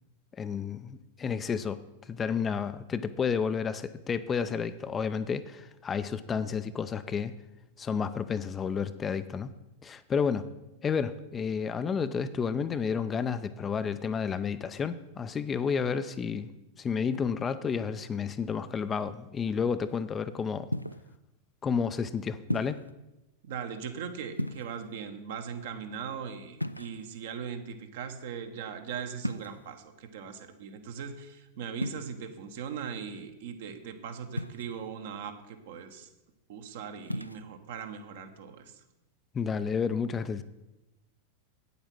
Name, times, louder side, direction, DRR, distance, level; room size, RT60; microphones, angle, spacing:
voice 1, 0.4-1.8 2.1-7.3 7.8-9.5 9.8-10.5 10.8-16.5 16.8-20.7 21.6-22.8 39.3-40.4, left 6 dB, 20° left, 11 dB, 0.5 m, -31 dB
sound 1, 20.7-21.1 22.5-22.9 24.3-25.0 26.6-27.3 29.2-29.7 31.8-32.1 34.4-34.9 37.0-37.4, left 1 dB, 90° left, 0.3 m, -35 dB
voice 2, 23.4-36.1 36.5-38.8, right 7 dB, 55° right, 7 dB, 1.1 m, -39 dB
8.9 x 8.1 x 6.1 m, 0.96 s
figure-of-eight pair, 90°, 0 cm